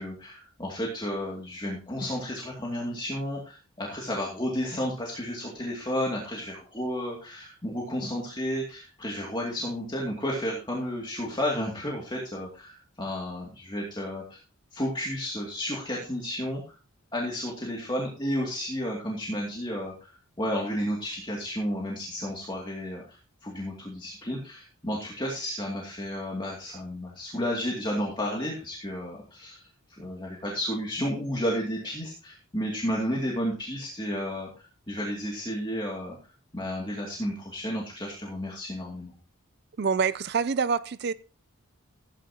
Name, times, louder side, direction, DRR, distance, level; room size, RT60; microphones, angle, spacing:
voice 1, 0.0-14.4 14.7-16.6 17.1-29.6 29.9-36.2 36.5-39.1, equal, 20° left, 2.5 m, -32 dB
voice 2, 39.8-41.1, right 5 dB, 50° right, 0.4 m, -26 dB
15.5 x 9.8 x 2.9 m
head